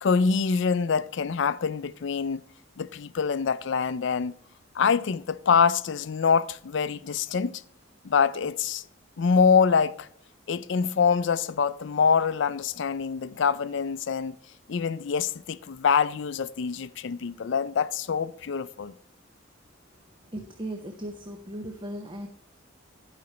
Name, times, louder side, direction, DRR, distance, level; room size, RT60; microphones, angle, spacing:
voice 1, 0.0-2.4 2.8-4.3 4.8-7.5 8.0-8.8 9.2-10.1 10.5-14.4 14.7-18.9, left 6 dB, 60° left, 0.4 m, -25 dB
voice 2, 20.3-22.3, right 1 dB, 25° right, 0.7 m, -37 dB
11.5 x 5.0 x 4.3 m
head